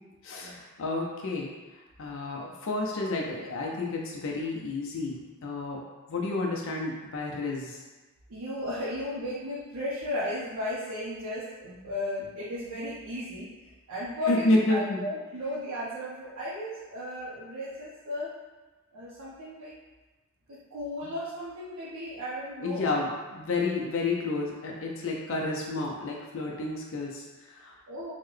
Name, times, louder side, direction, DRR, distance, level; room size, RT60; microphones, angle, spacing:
voice 1, 0.2-5.8 6.1-7.8 14.3-15.0 22.6-27.8, left 2 dB, 65° left, -1 dB, 0.4 m, -30 dB
voice 2, 8.3-18.3 18.9-19.8 20.5-22.9 27.9-28.1, left 1 dB, 80° right, -8 dB, 0.6 m, -35 dB
3.6 x 2.1 x 3.2 m, 1.2 s
head